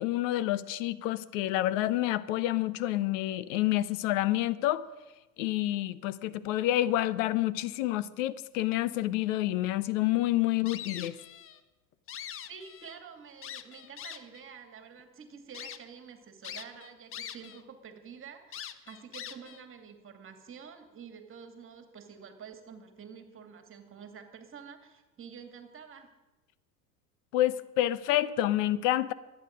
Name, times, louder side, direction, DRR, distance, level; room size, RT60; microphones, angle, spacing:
voice 1, 0.0-4.8 5.4-11.2 27.3-29.1, left 14 dB, 50° left, 17 dB, 0.9 m, -28 dB
sound 1, 10.7-11.6 11.9-13.0 13.4-14.4 15.0-15.1 15.5-15.8 16.4-17.6 17.9-18.0 18.5-19.6, left 10 dB, 25° left, 0.9 m, -42 dB
voice 2, 12.5-26.1, right 6 dB, 25° right, 6 dB, 2.4 m, -48 dB
24.5 x 9.3 x 5.2 m, 1.1 s
figure-of-eight pair, 85°, 48 cm